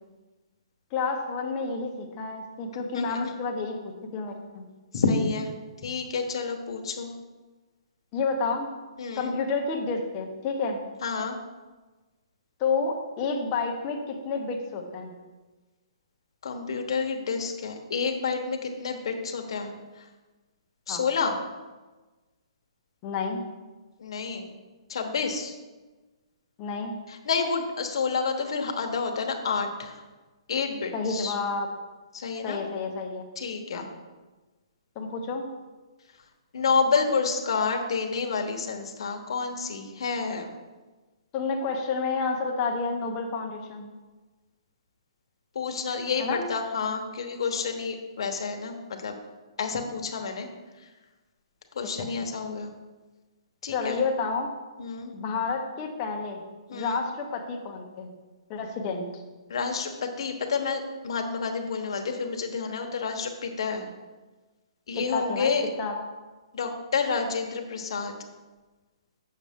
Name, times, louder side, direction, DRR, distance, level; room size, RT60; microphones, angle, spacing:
voice 1, 0.9-4.6 8.1-8.7 9.2-10.8 12.6-15.1 20.9-21.0 23.0-23.4 26.6-26.9 30.9-31.7 32.4-33.3 33.7-33.8 35.0-35.5 41.3-43.9 46.2-46.4 53.7-54.5 55.1-56.4 56.7-58.1 58.5-59.1 65.0-65.5 65.8-65.9, left 4 dB, 20° left, 2 dB, 0.8 m, -30 dB
voice 2, 2.9-3.3 4.9-5.5 5.8-7.1 9.0-9.3 11.0-11.4 16.4-20.1 20.9-21.4 24.0-24.5 24.9-25.6 27.1-30.0 30.5-31.4 32.1-32.6 33.4-33.9 36.5-40.5 45.5-49.2 49.6-50.5 50.8-50.9 51.7-52.7 53.6-54.0 54.8-55.1 56.7-57.0 59.5-63.9 64.9-65.6 66.5-68.2, left 5 dB, 55° left, 4 dB, 1.0 m, -29 dB
7.4 x 6.4 x 3.6 m, 1.2 s
hypercardioid pair, 170°, 3 cm